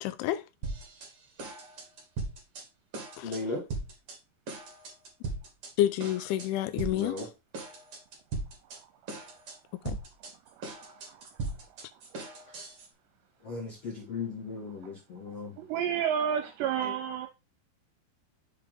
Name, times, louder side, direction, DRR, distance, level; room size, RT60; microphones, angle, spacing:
voice 1, 0.0-0.5 3.2-3.3 5.8-7.2 9.9-10.0, left 13 dB, 90° left, 3.1 m, -29 dB
sound 1, 0.6-1.1 1.4-2.6 2.9-3.4 3.7-4.2 4.5-5.7 6.0-6.5 6.8-7.2 7.5-8.8 9.1-9.5 9.8-12.9, right 3 dB, 45° right, 2.0 m, -38 dB
voice 2, 3.2-3.7 6.7-7.3 12.5-12.6 13.4-15.6 16.8-16.9, left 3 dB, 75° left, 1.4 m, -37 dB
voice 3, 10.6-11.3 15.6-17.3, right 8 dB, 80° right, 2.8 m, -31 dB
7.1 x 5.2 x 3.6 m
omnidirectional pair, 5.3 m